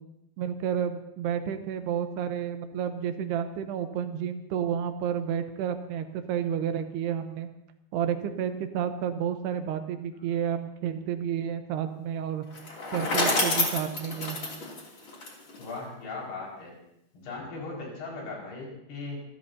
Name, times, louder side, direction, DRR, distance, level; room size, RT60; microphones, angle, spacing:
voice 1, 0.4-7.5 7.9-12.4 12.9-14.4, right 8 dB, 80° right, 8 dB, 2.9 m, -30 dB
Bicycle, 12.5-15.7, left 2 dB, 35° left, 3.0 m, -28 dB
voice 2, 15.6-16.8 17.1-19.2, left 3 dB, 70° left, -3 dB, 7.1 m, -38 dB
26.0 x 14.0 x 2.8 m, 0.82 s
omnidirectional pair, 4.8 m